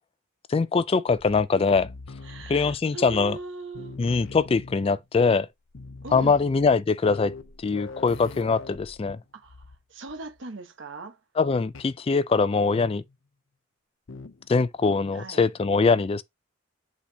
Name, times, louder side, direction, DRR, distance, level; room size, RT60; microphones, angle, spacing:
voice 1, 0.5-1.9 2.5-3.4 4.0-5.5 6.1-7.3 7.6-9.2 11.4-13.0 14.5-16.2, left 4 dB, 30° left, 0.3 m, -22 dB
sound 1, 1.2-3.5 3.7-5.1 5.4-5.5 5.7-9.8 10.1-10.4 11.7-12.0 12.7-13.2 14.1-14.5, left 3 dB, 90° left, 0.7 m, -43 dB
voice 2, 2.2-4.0 6.0-6.4 9.3-11.2 15.1-15.4, right 3 dB, 70° right, 1.2 m, -40 dB
8.0 x 4.1 x 2.8 m
head